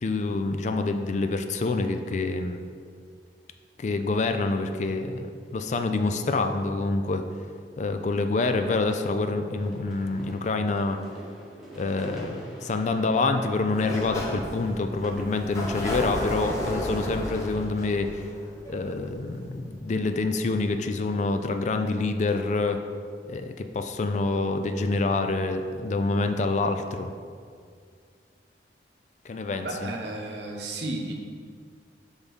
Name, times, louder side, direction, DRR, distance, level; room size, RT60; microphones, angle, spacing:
voice 1, 0.0-2.6 3.8-7.2 7.8-11.0 11.8-18.3 18.7-22.8 23.3-27.1 29.2-29.9, left 3 dB, 40° left, 7 dB, 0.4 m, -27 dB
sound 1, 9.6-17.6, equal, ahead, 1.1 m, -45 dB
Sliding door, 13.7-19.3, equal, 20° left, 0.9 m, -33 dB
voice 2, 29.6-31.1, right 2 dB, 75° right, 1 dB, 0.9 m, -33 dB
6.2 x 3.5 x 5.2 m, 2.1 s
head